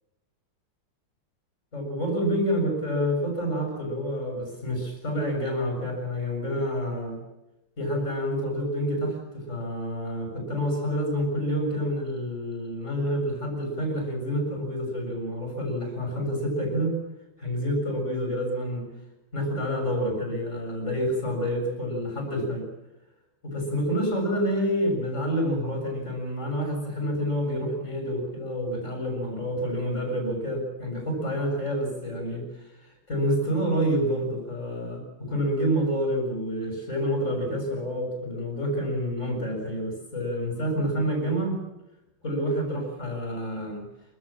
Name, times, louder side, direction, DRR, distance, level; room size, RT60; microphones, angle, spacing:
voice 1, 1.7-7.2 7.8-17.0 17.4-18.9 19.3-22.7 23.4-41.6 42.2-43.8, equal, 35° left, 2 dB, 7.6 m, -28 dB
27.5 x 16.0 x 7.5 m, 0.96 s
omnidirectional pair, 2.3 m